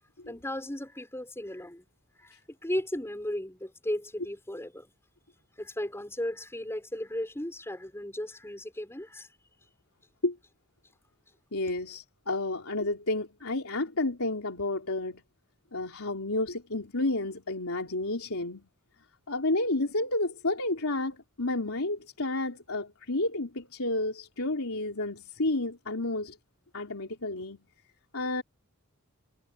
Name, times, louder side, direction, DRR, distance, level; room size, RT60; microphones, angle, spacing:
voice 1, 0.3-1.9 2.2-4.9 5.6-9.3, left 1 dB, 10° left, 6.3 m, -35 dB
voice 2, 11.5-15.2 15.7-18.7 19.3-26.4 26.7-27.6 28.1-28.4, left 2 dB, 75° left, 3.9 m, -31 dB
head